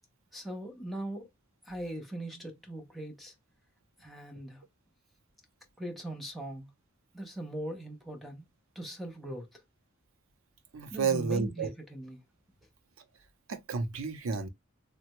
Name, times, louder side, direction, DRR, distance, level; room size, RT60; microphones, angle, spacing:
voice 1, 0.3-1.3 1.6-3.3 4.0-4.6 5.8-6.7 7.1-8.5 8.8-9.6 10.9-12.2, right 1 dB, ahead, 0.6 m, -40 dB
voice 2, 10.7-11.7 13.5-14.5, right 5 dB, 75° right, 0.6 m, -31 dB
3.3 x 2.1 x 2.9 m
head